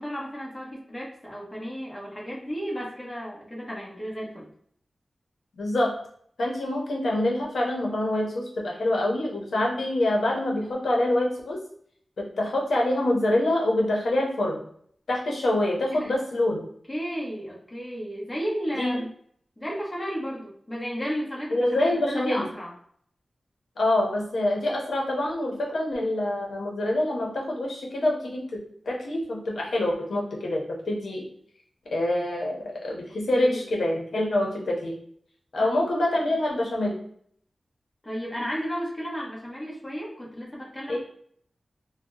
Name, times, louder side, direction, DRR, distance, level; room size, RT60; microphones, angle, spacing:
voice 1, 0.0-4.5 15.9-16.1 16.9-19.1 19.6-22.7 33.3-33.6 35.6-35.8 36.3-36.4 38.0-41.0, equal, 20° left, -5 dB, 1.1 m, -33 dB
voice 2, 5.6-5.9 6.4-11.6 12.2-14.6 15.1-16.6 18.8-19.0 21.5-22.5 23.8-28.5 28.9-31.3 31.9-35.0 35.5-37.0 40.9-41.0, left 1 dB, 90° left, -1 dB, 0.7 m, -25 dB
2.7 x 2.1 x 3.7 m, 0.63 s
wide cardioid pair, 90°, 0 cm